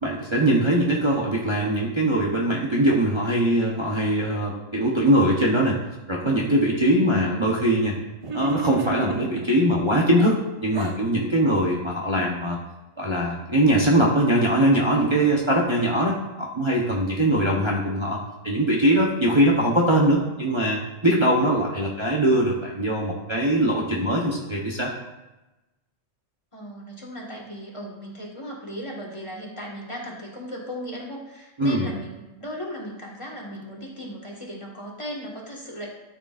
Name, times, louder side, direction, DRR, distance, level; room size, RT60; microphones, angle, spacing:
voice 1, 0.0-5.8 6.1-8.0 8.3-12.6 13.0-24.9 31.6-31.9, right 1 dB, 25° right, -4 dB, 0.9 m, -21 dB
voice 2, 7.1-7.5 12.1-12.3 26.5-35.9, equal, 25° left, -3 dB, 1.7 m, -37 dB
sound 1, 8.2-9.5 10.2-11.0, right 4 dB, 45° right, 0.4 m, -32 dB
13.0 x 6.5 x 2.5 m, 1.0 s
omnidirectional pair, 1.3 m